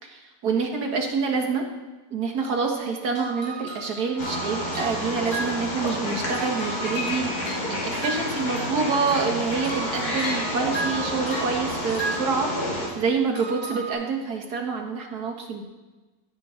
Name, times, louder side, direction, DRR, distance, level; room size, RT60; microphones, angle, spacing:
voice 1, 0.0-1.6 2.1-12.5 12.9-15.6, right 4 dB, 75° right, 2 dB, 1.9 m, -27 dB
sound 1, 3.2-6.0 6.3-8.8 9.1-12.9 13.4-13.9, right 2 dB, 50° left, 3.8 m, -35 dB
Wild animals, 4.2-12.9, left 1 dB, 70° left, 3.0 m, -30 dB
15.0 x 6.8 x 3.8 m, 1.2 s
omnidirectional pair, 1.7 m